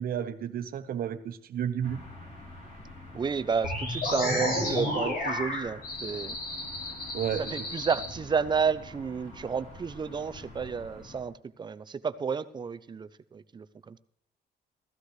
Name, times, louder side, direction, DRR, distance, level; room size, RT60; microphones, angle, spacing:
voice 1, 0.0-2.0 7.1-7.6, right 9 dB, 60° right, 10 dB, 1.1 m, -32 dB
sound 1, 1.8-11.2, left 1 dB, 40° left, 4.8 m, -47 dB
voice 2, 3.1-6.3 7.5-11.3 11.6-14.0, right 6 dB, 25° right, 15 dB, 0.5 m, -31 dB
sound 2, 3.6-8.1, left 1 dB, 65° left, 5.6 m, -31 dB
16.0 x 14.5 x 3.2 m, 0.71 s
cardioid pair, 135°, 17 cm